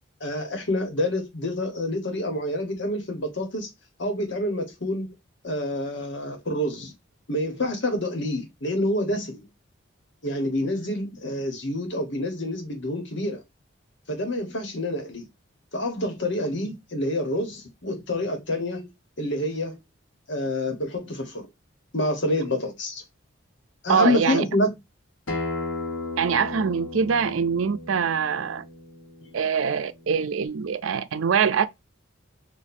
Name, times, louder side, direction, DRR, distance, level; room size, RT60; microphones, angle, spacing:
voice 1, 0.2-3.7 4.0-5.1 5.4-6.9 7.3-9.5 10.2-13.4 14.1-15.2 15.7-18.9 19.2-19.8 20.3-21.5 21.9-23.0 23.8-24.7 29.2-29.3, left 1 dB, 65° left, 1.3 m, -27 dB
voice 2, 23.9-24.4 26.2-28.6 29.3-31.7, right 6 dB, 85° right, 0.4 m, -24 dB
Acoustic guitar, 25.3-30.5, left 2 dB, 90° left, 1.3 m, -35 dB
4.3 x 2.5 x 2.7 m
head